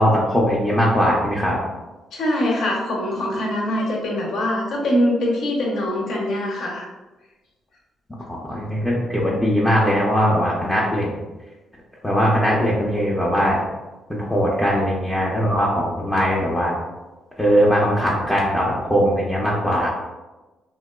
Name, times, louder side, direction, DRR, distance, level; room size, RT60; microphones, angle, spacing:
voice 1, 0.0-1.6 8.3-11.1 12.0-13.6 14.1-16.7 17.4-19.9, equal, 10° left, -6 dB, 0.5 m, -20 dB
voice 2, 2.1-6.9, left 1 dB, 70° left, -2 dB, 0.7 m, -23 dB
2.8 x 2.1 x 2.2 m, 1.1 s
cardioid pair, 90°, 0 cm